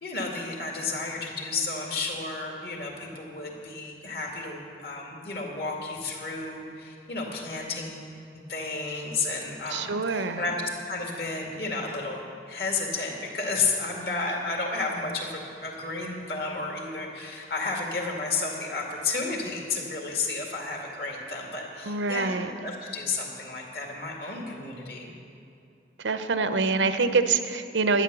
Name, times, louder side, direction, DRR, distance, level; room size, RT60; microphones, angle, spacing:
voice 1, 0.0-8.0 8.5-10.6 10.9-12.2 12.5-25.1, left 3 dB, 60° left, 0 dB, 2.1 m, -32 dB
voice 2, 9.7-10.4 21.8-22.5 26.0-28.0, right 4 dB, 90° right, 9 dB, 0.7 m, -25 dB
11.5 x 9.8 x 6.9 m, 2.6 s
head